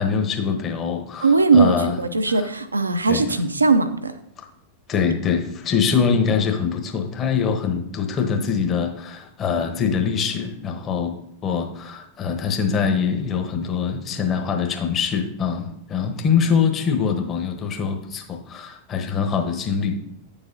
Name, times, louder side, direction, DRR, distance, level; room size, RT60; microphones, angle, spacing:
voice 1, 0.0-2.0 2.3-2.5 3.1-3.3 4.4-4.5 4.9-11.2 11.4-20.0, left 6 dB, 30° left, 4 dB, 1.1 m, -23 dB
voice 2, 1.2-4.1, right 4 dB, 80° right, 10 dB, 0.6 m, -19 dB
9.6 x 7.0 x 2.8 m, 0.76 s
figure-of-eight pair, 90°, 0 cm